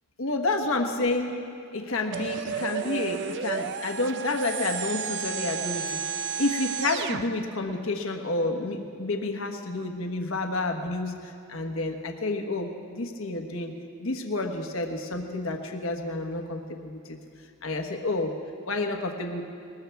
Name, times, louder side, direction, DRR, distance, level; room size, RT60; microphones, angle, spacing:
voice 1, 0.2-1.4 1.7-6.0 6.4-13.7 14.0-17.0 17.6-18.3 18.7-19.4, left 2 dB, 65° left, 4 dB, 1.3 m, -29 dB
sound 1, 2.1-7.2, right 6 dB, 55° right, 0.5 m, -32 dB
21.0 x 20.0 x 3.5 m, 2.6 s
head